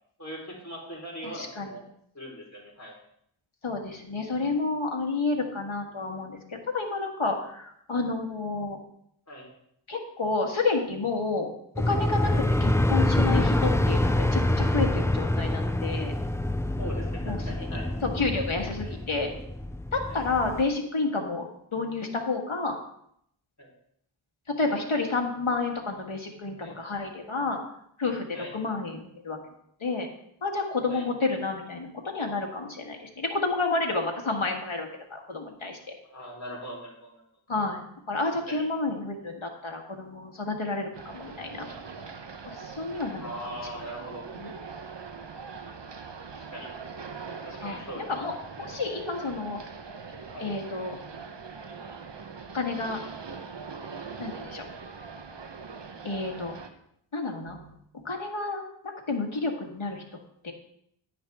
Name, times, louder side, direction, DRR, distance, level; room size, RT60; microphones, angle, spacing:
voice 1, 0.2-1.8 2.1-2.9 9.3-9.5 16.8-17.9 18.8-19.0 20.0-20.2 23.6-23.7 26.6-26.8 28.3-28.5 30.9-31.1 36.1-37.2 38.5-38.7 43.2-44.3 46.4-46.7 47.4-48.1 50.3-50.6, right 1 dB, 35° left, -2 dB, 3.8 m, -40 dB
voice 2, 1.2-1.7 3.6-8.8 9.9-11.5 11.9-16.1 17.2-17.4 18.0-19.3 19.9-22.8 24.6-27.6 28.0-29.4 29.8-30.1 30.4-35.8 37.5-37.8 38.1-41.7 42.5-43.3 44.4-44.5 47.6-47.8 48.1-49.6 50.4-51.0 52.5-53.0 54.2-54.7 56.0-56.5 57.1-57.7 58.0-58.6 59.1-60.5, left 3 dB, 75° left, 2 dB, 1.6 m, -30 dB
sound 1, 11.8-20.6, left 1 dB, 5° left, 0.4 m, -26 dB
sound 2, 40.9-56.7, right 5 dB, 60° right, 1.0 m, -42 dB
10.0 x 9.3 x 3.5 m, 0.71 s
wide cardioid pair, 40°, 48 cm